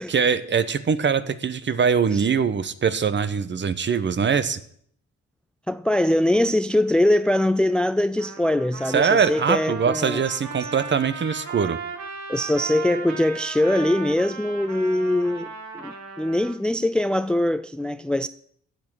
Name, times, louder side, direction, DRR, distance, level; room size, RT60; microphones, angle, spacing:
voice 1, 0.1-4.6 8.9-11.8, right 6 dB, 40° right, 1.0 m, -22 dB
voice 2, 5.7-10.2 10.6-10.7 12.3-18.3, left 1 dB, 5° left, 0.4 m, -22 dB
Trumpet, 8.2-16.6, right 5 dB, 65° right, 2.4 m, -36 dB
14.5 x 7.9 x 6.3 m
cardioid pair, 90°, 30 cm